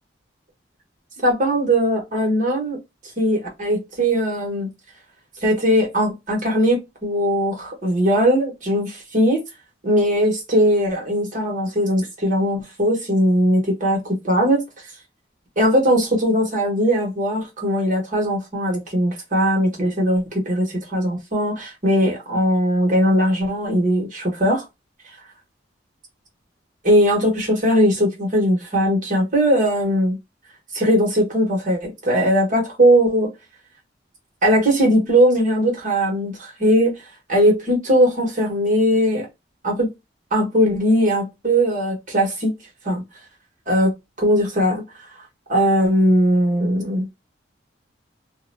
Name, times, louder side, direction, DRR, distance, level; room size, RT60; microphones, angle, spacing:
voice 1, 1.2-2.8 3.2-4.7 5.4-9.4 9.8-14.0 14.2-14.6 15.6-24.6 26.8-30.2 30.7-33.3 34.4-37.0 37.3-39.3 39.6-39.9 40.3-42.5 42.8-43.0 43.7-43.9 44.2-44.8 45.5-47.1, equal, 45° right, 1.2 m, -19 dB
2.6 x 2.2 x 2.5 m
head